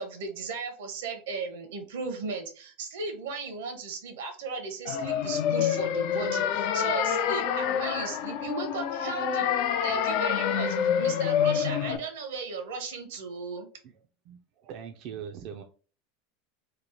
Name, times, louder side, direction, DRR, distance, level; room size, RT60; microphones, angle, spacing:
voice 1, 0.0-9.5 9.8-13.7, right 4 dB, 85° right, 0.8 m, -36 dB
sound 1, 4.9-12.0, left 8 dB, 60° left, 0.4 m, -27 dB
voice 2, 14.3-15.6, right 8 dB, 50° right, 0.3 m, -41 dB
2.9 x 2.0 x 2.9 m
supercardioid pair, 140°, 0 cm